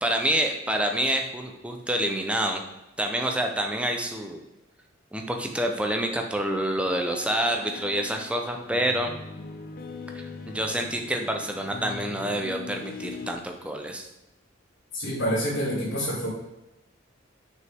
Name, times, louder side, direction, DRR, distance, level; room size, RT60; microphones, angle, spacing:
voice 1, 0.0-2.6 3.0-4.4 5.1-9.1 10.1-14.1, right 1 dB, 5° right, 3 dB, 0.8 m, -27 dB
sound 1, 6.9-13.3, left 4 dB, 45° left, 0.6 m, -40 dB
voice 2, 14.9-16.3, equal, 85° left, -10 dB, 2.5 m, -27 dB
6.5 x 5.4 x 3.6 m, 0.96 s
head